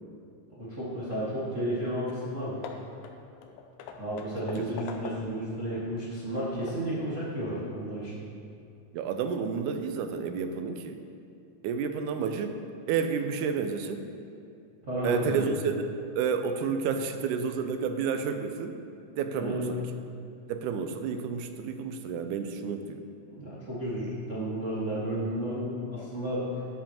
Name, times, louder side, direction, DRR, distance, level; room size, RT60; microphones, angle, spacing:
voice 1, 0.6-2.6 4.0-8.2 14.9-15.5 19.4-19.7 23.3-26.5, right 1 dB, 35° right, -10 dB, 1.2 m, -32 dB
Hammer / Wood, 1.7-1.8 2.1-2.3 2.6-5.5 6.0-7.0, left 6 dB, 80° left, 2.0 m, -43 dB
voice 2, 8.9-11.0 11.6-12.6 12.9-14.1 15.0-18.8 19.1-19.8 20.5-23.0, right 6 dB, 80° right, 7 dB, 1.9 m, -30 dB
12.5 x 7.5 x 2.9 m, 2.5 s
omnidirectional pair, 3.8 m